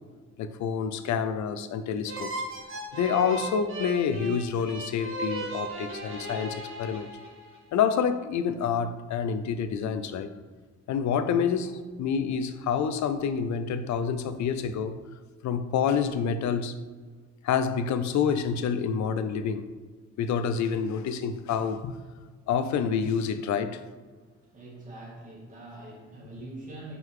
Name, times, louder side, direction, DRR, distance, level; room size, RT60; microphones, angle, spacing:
voice 1, 0.4-2.3 2.9-7.1 7.7-10.3 10.9-15.0 15.4-16.7 17.4-19.7 20.2-22.0 22.5-23.8, left 7 dB, 70° left, 0.6 m, -28 dB
sound 1, 2.1-7.6, right 2 dB, 45° right, 1.4 m, -36 dB
voice 2, 24.1-27.0, right 2 dB, 25° right, 2.1 m, -44 dB
5.9 x 5.6 x 3.7 m
cardioid pair, 90°, 30 cm